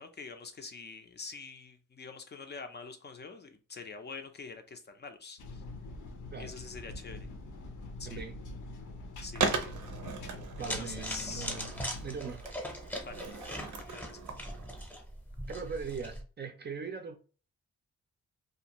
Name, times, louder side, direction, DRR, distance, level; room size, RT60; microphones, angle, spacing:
voice 1, 0.0-5.6 6.4-7.3 8.0-8.3 9.2-9.7 10.8-11.5 13.0-13.2 13.5-14.2, left 4 dB, 35° left, 0.4 m, -45 dB
sound 1, 5.4-12.2, left 2 dB, 90° left, 0.6 m, -44 dB
voice 2, 8.1-8.4 10.6-11.7 12.0-12.5 15.5-17.2, right 5 dB, 35° right, 0.4 m, -40 dB
Skateboard, 9.3-14.9, right 4 dB, 85° right, 0.6 m, -38 dB
sound 2, 10.6-16.2, equal, 5° left, 0.7 m, -41 dB
2.5 x 2.4 x 2.8 m
wide cardioid pair, 130°, 29 cm